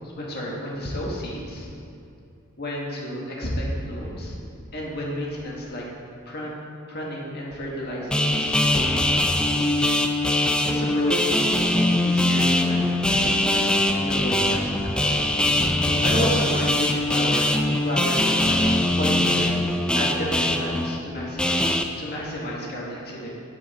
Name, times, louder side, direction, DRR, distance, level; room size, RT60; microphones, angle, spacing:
voice 1, 0.2-1.7 2.6-4.4 4.7-5.9 6.2-6.5 6.9-8.8 10.6-11.6 12.0-15.2 16.0-18.6 18.9-23.3, equal, 50° left, -4 dB, 1.6 m, -31 dB
sound 1, 8.1-21.8, left 1 dB, 5° left, 0.3 m, -22 dB
9.2 x 6.7 x 4.2 m, 2.6 s
head